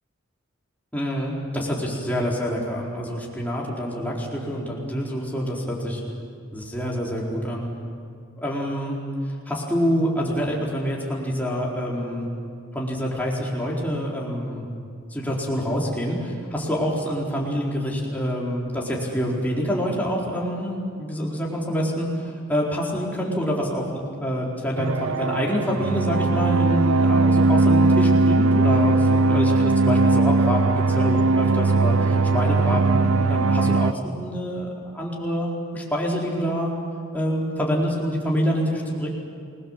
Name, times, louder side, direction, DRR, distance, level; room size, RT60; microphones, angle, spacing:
voice 1, 0.9-6.0 6.5-7.7 8.4-9.0 9.3-12.3 12.7-14.6 15.1-36.7 37.1-39.1, equal, 10° left, -4 dB, 4.2 m, -26 dB
sound 1, 24.8-33.9, right 3 dB, 85° right, 0.5 m, -19 dB
28.0 x 21.5 x 7.4 m, 2.3 s
head